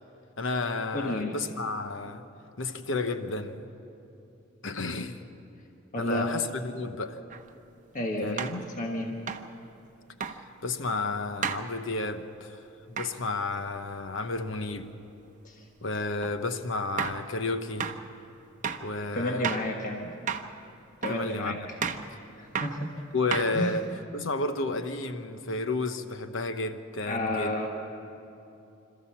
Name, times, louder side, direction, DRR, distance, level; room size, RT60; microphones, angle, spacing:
voice 1, 0.4-2.2 2.6-3.7 4.6-5.2 6.0-7.2 8.2-8.7 10.2-12.6 12.9-14.9 15.8-18.0 18.8-19.5 21.1-21.5 23.1-23.9 24.1-27.5, left 3 dB, 65° left, 9 dB, 1.0 m, -32 dB
voice 2, 0.9-1.4 5.9-6.3 7.9-8.4 8.8-9.2 15.4-15.7 19.1-20.1 21.0-21.8 22.4-22.9 23.5-23.8 27.1-27.7, left 1 dB, 40° left, 1 dB, 1.3 m, -31 dB
sound 1, 7.3-7.4 8.4-8.6 9.3-9.5 10.2-10.4 11.4-11.7 13.0-13.2 16.2-16.4 17.0-17.2 17.8-18.0 18.6-18.9 19.4-19.7 20.3-20.5 21.0-21.3 21.8-22.1 22.6-22.8 23.3-23.8, right 6 dB, 40° right, 0.8 m, -32 dB
26.5 x 14.0 x 7.3 m, 2.9 s
head